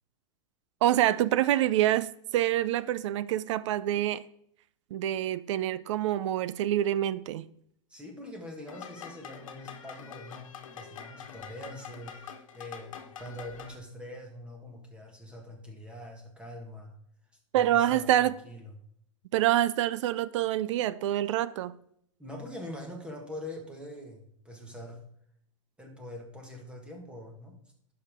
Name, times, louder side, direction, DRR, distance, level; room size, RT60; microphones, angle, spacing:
voice 1, 0.8-4.2 4.9-7.5 17.5-18.3 19.3-21.7, right 12 dB, 65° right, 0.5 m, -26 dB
voice 2, 7.9-16.9 17.5-18.7 22.2-25.0 25.8-27.5, left 1 dB, 5° right, 1.5 m, -44 dB
sound 1, 8.7-13.8, left 7 dB, 85° left, 1.2 m, -45 dB
11.0 x 5.5 x 3.6 m
supercardioid pair, 145°, 17 cm